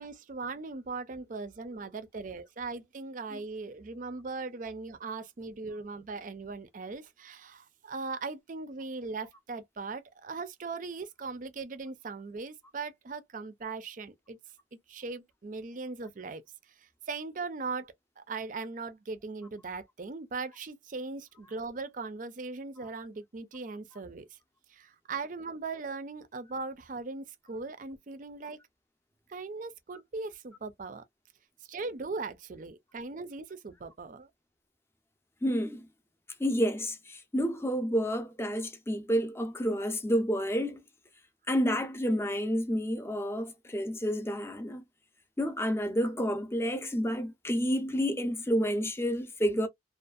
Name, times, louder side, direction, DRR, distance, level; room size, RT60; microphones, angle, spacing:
voice 1, 0.0-14.4 14.9-16.4 16.8-24.4 24.7-28.6 29.3-31.0 31.7-34.3, right 4 dB, 45° right, 0.5 m, -39 dB
voice 2, 35.4-35.8 36.4-40.8 41.5-44.8 45.4-49.7, equal, 15° left, 0.6 m, -29 dB
2.6 x 2.4 x 2.3 m
head